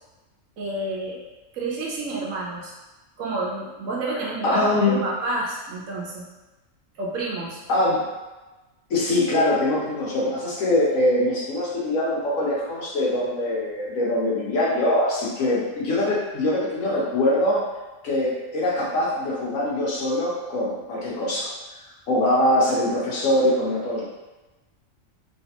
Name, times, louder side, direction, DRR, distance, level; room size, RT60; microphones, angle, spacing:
voice 1, 0.6-1.2 1.5-2.7 3.2-6.3 7.0-7.6, right 2 dB, 75° right, -3 dB, 1.1 m, -29 dB
voice 2, 4.4-5.0 7.7-8.1 8.9-17.7 18.0-21.5 22.1-24.1, left 1 dB, 80° left, -5 dB, 1.3 m, -23 dB
3.2 x 2.8 x 2.9 m, 1.1 s
omnidirectional pair, 1.4 m